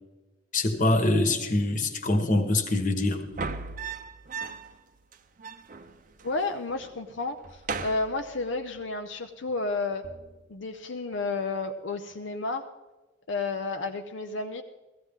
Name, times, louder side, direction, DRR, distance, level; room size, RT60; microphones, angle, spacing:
voice 1, 0.5-3.2, left 2 dB, 40° left, 7 dB, 1.3 m, -24 dB
sound 1, 3.2-4.8 5.1-5.2 5.4-6.4 6.7-7.1 7.4-8.8 10.0-10.4, right 4 dB, 40° right, 0.6 m, -37 dB
voice 2, 6.2-10.0 10.5-12.6 13.3-14.6, left 3 dB, 75° left, 5 dB, 0.6 m, -31 dB
16.0 x 14.5 x 3.6 m, 1.2 s
head